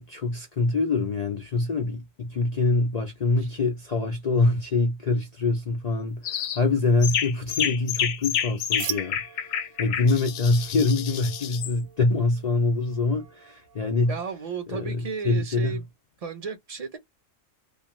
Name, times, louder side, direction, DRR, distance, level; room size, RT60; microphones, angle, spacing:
voice 1, 0.0-9.2 9.8-14.1 14.7-15.8, left 3 dB, 65° left, 0.4 m, -25 dB
sound 1, 6.2-6.6 7.0-11.7, left 9 dB, 85° left, 1.0 m, -29 dB
sound 2, 8.8-14.3, right 10 dB, 70° right, 0.9 m, -42 dB
voice 2, 14.1-15.8 16.2-17.0, right 5 dB, 45° right, 0.5 m, -33 dB
2.5 x 2.3 x 3.0 m
omnidirectional pair, 1.4 m